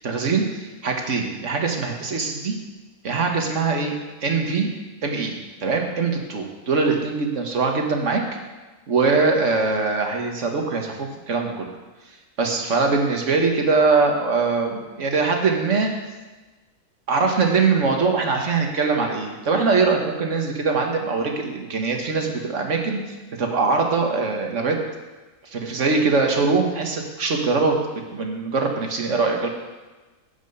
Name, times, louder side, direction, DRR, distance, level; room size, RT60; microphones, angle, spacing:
voice 1, 0.0-2.5 3.0-3.9 4.2-4.7 5.0-8.2 8.9-11.7 12.4-15.9 17.1-24.8 25.5-27.7 28.1-29.5, right 4 dB, 60° right, 2 dB, 1.8 m, -22 dB
11.0 x 6.1 x 7.9 m, 1.2 s
omnidirectional pair, 1.5 m